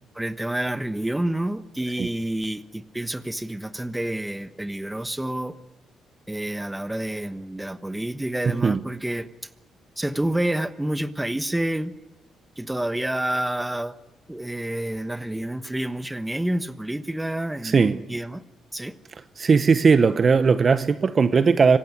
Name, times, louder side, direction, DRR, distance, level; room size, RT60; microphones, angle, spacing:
voice 1, 0.1-5.6 6.3-9.3 10.0-11.9 12.6-13.9 14.3-18.4 18.7-19.0, right 1 dB, 10° right, 1.1 m, -28 dB
voice 2, 8.4-8.8 17.6-18.2 19.4-21.8, right 5 dB, 40° right, 0.8 m, -19 dB
25.5 x 16.5 x 9.7 m
cardioid pair, 90°, 0 cm